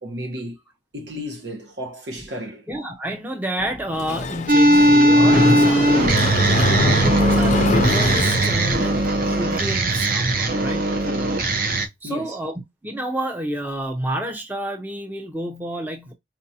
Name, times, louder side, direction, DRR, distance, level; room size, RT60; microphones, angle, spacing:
voice 1, 0.0-0.6 0.9-2.7 11.0-11.4 12.0-12.4, equal, 70° right, 1.2 m, -34 dB
voice 2, 2.7-11.0 12.0-16.1, right 1 dB, 10° right, 0.6 m, -30 dB
Mechanisms, 3.9-9.1, left 2 dB, 40° left, 0.5 m, -24 dB
sound 1, 4.5-11.9, right 1 dB, 50° right, 0.7 m, -18 dB
4.6 x 2.5 x 2.8 m
head